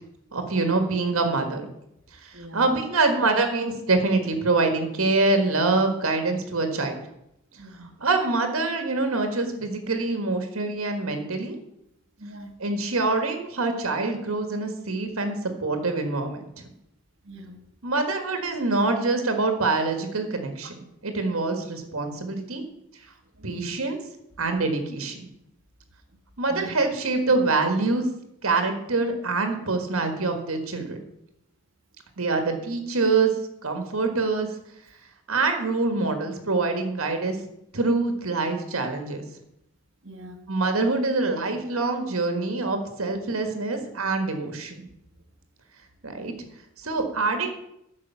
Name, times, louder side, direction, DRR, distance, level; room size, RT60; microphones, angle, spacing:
voice 1, 0.3-1.7 2.2-6.9 8.0-11.6 12.6-16.4 17.8-20.7 21.0-22.6 23.4-24.0 24.4-25.3 26.4-28.0 28.4-31.0 32.2-33.3 33.6-34.5 35.3-37.4 37.7-39.2 40.5-44.9 46.0-46.3 46.8-47.5, right 3 dB, 80° right, 1.7 m, -25 dB
voice 2, 2.3-2.6 7.6-7.9 12.2-12.5 17.2-17.6 23.4-23.8 26.5-26.7 40.0-40.4 46.3-46.5, right 1 dB, 60° right, 1.7 m, -42 dB
9.9 x 6.2 x 7.2 m
head